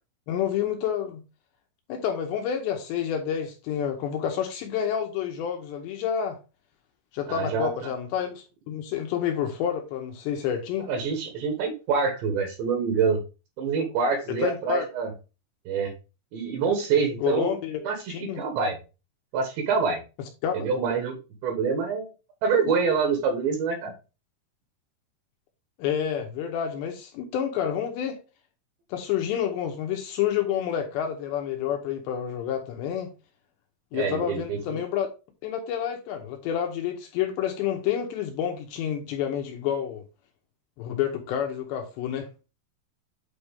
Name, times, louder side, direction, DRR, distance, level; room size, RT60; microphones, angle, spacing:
voice 1, 0.3-1.2 1.9-6.4 7.1-10.9 14.4-14.9 17.2-17.8 18.1-18.4 20.4-20.7 25.8-28.2 28.9-33.1 33.9-35.1 35.4-40.0 40.8-42.3, left 9 dB, 75° left, 2.7 m, -29 dB
voice 2, 7.3-7.9 10.9-13.2 13.6-15.1 15.7-15.9 16.3-17.5 17.8-18.8 19.3-20.0 20.5-21.2 21.4-22.1 22.4-23.9 33.9-34.8, right 5 dB, 70° right, 3.1 m, -26 dB
8.8 x 4.2 x 3.5 m
omnidirectional pair, 5.9 m